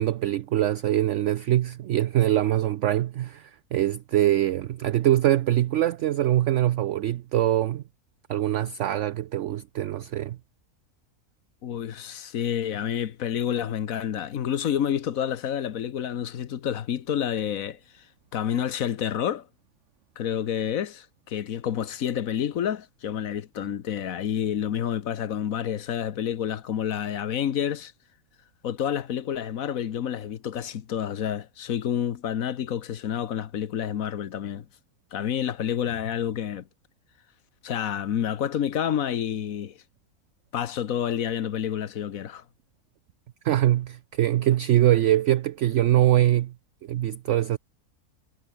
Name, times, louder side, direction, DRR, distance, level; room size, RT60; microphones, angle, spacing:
voice 1, 0.0-7.8 8.3-10.4 43.4-46.5 46.9-47.6, right 13 dB, 65° right, 0.8 m, -23 dB
voice 2, 11.6-18.0 18.3-19.5 20.2-27.9 28.6-34.7 35.1-36.7 37.6-39.8 40.5-42.4, left 9 dB, 70° left, 1.4 m, -29 dB
omnidirectional pair, 1.5 m